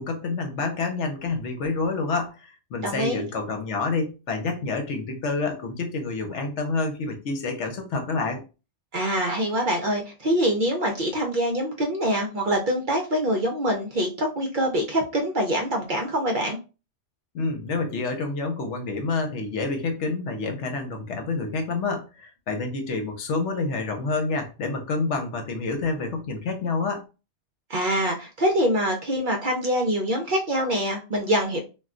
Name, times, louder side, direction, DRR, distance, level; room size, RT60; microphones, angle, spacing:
voice 1, 0.0-8.4 17.3-27.0, left 3 dB, 75° left, 4 dB, 1.0 m, -28 dB
voice 2, 2.8-3.2 8.9-16.6 27.7-31.6, equal, 55° right, 2 dB, 0.6 m, -24 dB
2.3 x 2.2 x 3.7 m, 0.30 s
omnidirectional pair, 1.2 m